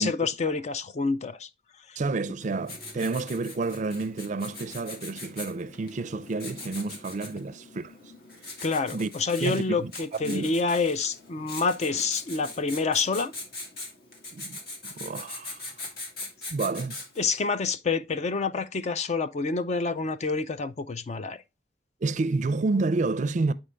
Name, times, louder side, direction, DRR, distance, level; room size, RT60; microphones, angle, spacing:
voice 1, 0.0-1.5 1.9-2.0 8.6-13.3 17.2-21.4, left 4 dB, 40° left, 0.4 m, -27 dB
voice 2, 2.0-7.9 8.9-9.1 9.4-10.5 14.3-14.6 14.8-15.6 16.5-17.0 22.0-23.5, right 3 dB, 45° right, 0.4 m, -29 dB
Writing, 2.4-17.4, left 2 dB, 60° left, 1.9 m, -42 dB
8.7 x 4.4 x 3.3 m
head